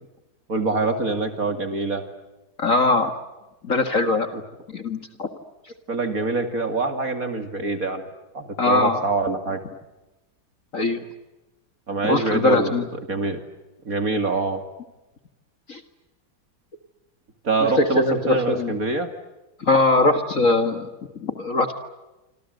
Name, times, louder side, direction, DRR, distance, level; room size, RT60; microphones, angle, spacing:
voice 1, 0.5-2.0 5.9-8.1 8.3-9.6 11.9-12.7 13.1-13.4 13.8-14.6 17.4-19.1, right 3 dB, 50° right, 8 dB, 2.7 m, -25 dB
voice 2, 2.6-3.1 3.6-4.3 4.7-5.3 8.6-9.0 10.7-11.0 12.0-12.9 15.7-15.8 17.6-18.8 19.6-20.9 21.2-21.7, left 2 dB, 45° left, 8 dB, 2.1 m, -21 dB
27.0 x 26.5 x 7.9 m, 1.0 s
omnidirectional pair, 2.0 m